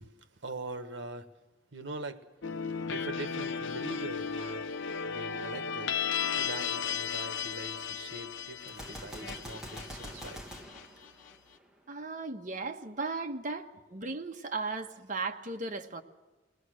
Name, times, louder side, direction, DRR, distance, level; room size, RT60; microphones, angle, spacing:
voice 1, 0.0-1.3 1.7-2.3 2.9-4.7 5.1-6.0 6.3-10.4, right 2 dB, 70° right, 1.4 m, -43 dB
sound 1, 2.4-11.3, left 6 dB, 80° left, 0.6 m, -35 dB
Gunshot gunfire, 8.7-11.8, equal, 5° right, 1.5 m, -45 dB
voice 2, 11.9-16.0, right 3 dB, 45° right, 1.2 m, -36 dB
22.0 x 18.5 x 6.4 m
head